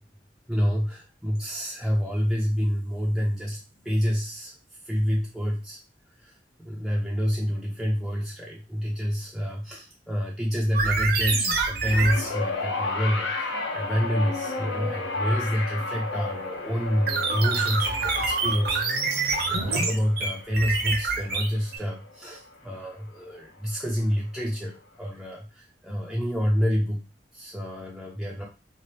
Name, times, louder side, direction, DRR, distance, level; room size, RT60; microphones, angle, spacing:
voice 1, 0.5-4.5 4.8-5.8 6.2-27.0 27.3-28.5, equal, ahead, -3 dB, 0.3 m, -28 dB
sound 1, 10.7-12.2 17.1-21.8, right 4 dB, 55° right, 0.6 m, -26 dB
sound 2, 11.8-22.3 23.3-23.4, left 3 dB, 85° left, 0.7 m, -33 dB
2.8 x 2.3 x 3.2 m, 0.33 s
head